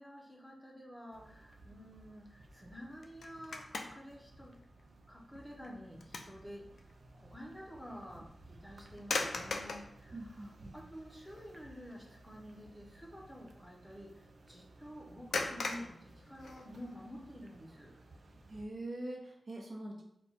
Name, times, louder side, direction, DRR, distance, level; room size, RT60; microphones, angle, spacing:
voice 1, 0.0-4.6 5.1-6.7 7.1-18.0, equal, 5° left, -1 dB, 0.8 m, -50 dB
sound 1, 1.1-18.6, right 2 dB, 70° right, 0.5 m, -58 dB
sound 2, 3.0-4.2 4.6-4.8 5.4-6.4 6.8-6.9 9.0-9.9 10.8-10.9 11.2-11.6 11.8-12.1 15.3-16.9, left 3 dB, 90° left, 0.4 m, -39 dB
voice 2, 10.1-10.8 18.5-20.0, right 1 dB, 50° right, -2 dB, 1.0 m, -43 dB
4.2 x 2.3 x 4.2 m, 0.78 s
wide cardioid pair, 135°, 0 cm